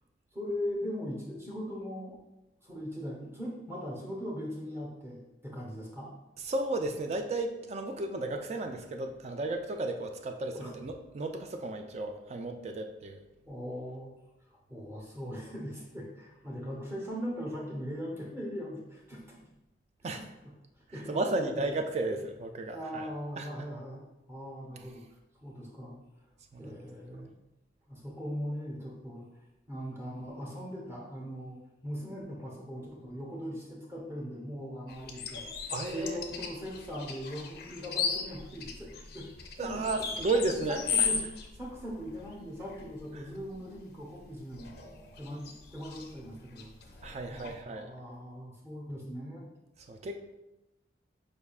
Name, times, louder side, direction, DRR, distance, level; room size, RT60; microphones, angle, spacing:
voice 1, 0.3-2.2 2.6-6.1 10.5-10.7 13.5-14.1 14.7-19.4 20.1-20.3 20.9-21.6 22.1-22.2 22.7-25.0 25.4-26.0 26.6-27.3 27.9-29.3 29.7-31.6 31.8-39.9 40.5-41.3 41.5-44.7 45.2-49.5, equal, 15° right, -3 dB, 0.9 m, -40 dB
voice 2, 6.4-13.2 20.0-20.3 21.1-23.1 23.4-23.7 26.5-26.6 35.7-36.2 39.6-41.1 47.0-47.9 49.9-50.4, right 2 dB, 35° right, 5 dB, 0.3 m, -34 dB
sound 1, 34.9-47.6, left 6 dB, 55° left, 0.5 m, -37 dB
5.0 x 3.5 x 2.4 m, 0.99 s
head